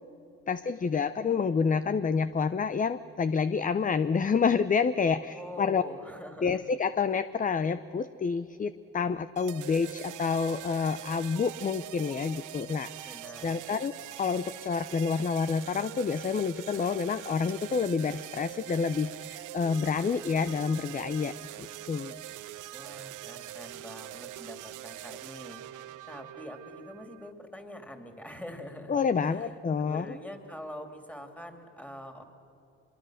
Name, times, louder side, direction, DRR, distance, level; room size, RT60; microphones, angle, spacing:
voice 1, 0.5-5.8 6.4-13.2 13.4-21.3 21.6-22.2 28.9-30.1, left 5 dB, 25° left, 12 dB, 0.6 m, -28 dB
voice 2, 5.2-6.6 13.0-13.6 22.7-29.0 29.2-32.2, left 1 dB, 5° left, 5 dB, 2.9 m, -45 dB
sound 1, 9.4-27.3, right 14 dB, 85° right, 0.7 m, -43 dB
25.0 x 22.5 x 6.4 m, 3.0 s
cardioid pair, 90°, 30 cm